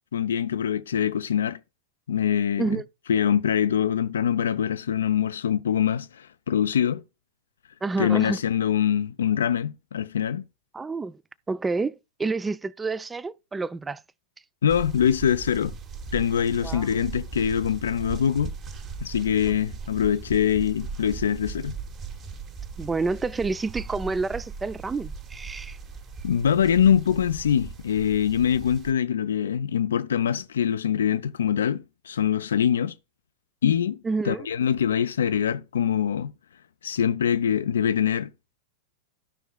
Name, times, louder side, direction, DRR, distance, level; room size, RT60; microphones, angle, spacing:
voice 1, 0.1-1.6 2.1-2.8 3.1-7.0 8.0-10.4 14.6-15.7 16.1-18.5 19.0-21.8 26.2-33.0 33.6-34.0 34.2-36.3 36.8-38.3, left 8 dB, 65° left, 0.4 m, -24 dB
voice 2, 7.8-8.4 10.7-11.2 11.5-14.0 16.6-16.9 22.8-25.8 34.0-34.5, right 3 dB, 15° right, 0.3 m, -29 dB
sound 1, 14.7-28.9, right 5 dB, 30° right, 1.2 m, -38 dB
14.0 x 5.4 x 2.3 m
figure-of-eight pair, 90°, 0 cm